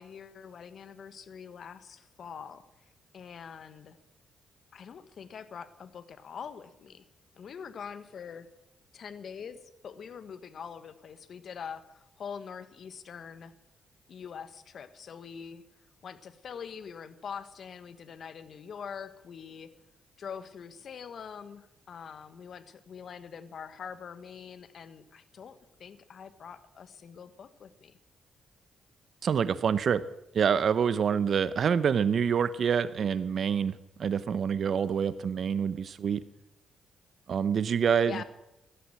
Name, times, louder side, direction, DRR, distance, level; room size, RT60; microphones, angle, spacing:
voice 1, 0.0-2.6 3.1-4.0 4.7-7.0 7.3-8.5 8.9-13.5 14.1-15.6 16.0-19.7 20.2-28.0 38.0-38.2, left 7 dB, 60° left, 12 dB, 1.4 m, -44 dB
voice 2, 29.2-30.0 30.3-36.2 37.3-38.2, right 7 dB, 60° right, 15 dB, 0.8 m, -26 dB
15.5 x 12.0 x 7.7 m, 0.87 s
supercardioid pair, 60°, 0 cm